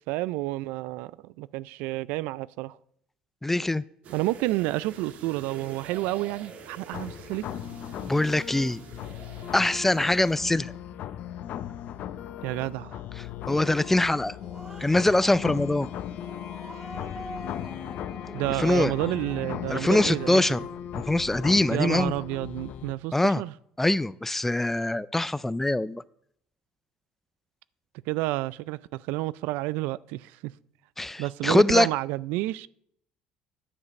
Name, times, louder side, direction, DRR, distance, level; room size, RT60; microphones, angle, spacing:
voice 1, 0.1-2.8 4.1-7.4 12.4-13.0 18.3-20.4 21.7-23.5 28.1-30.5 31.2-32.7, right 18 dB, 80° right, 0.3 m, -30 dB
voice 2, 3.4-3.8 8.0-8.8 9.5-10.7 13.5-14.4 14.8-15.9 18.6-18.9 19.7-20.6 20.9-22.1 23.1-23.4 23.8-26.0 31.0-31.9, left 2 dB, 10° left, 0.4 m, -23 dB
sound 1, 4.0-10.4, right 5 dB, 55° right, 1.4 m, -46 dB
sound 2, 6.9-22.9, left 10 dB, 60° left, 0.6 m, -37 dB
Growling, 14.1-20.9, equal, 15° right, 2.3 m, -45 dB
9.8 x 5.1 x 6.9 m
supercardioid pair, 85°, 3 cm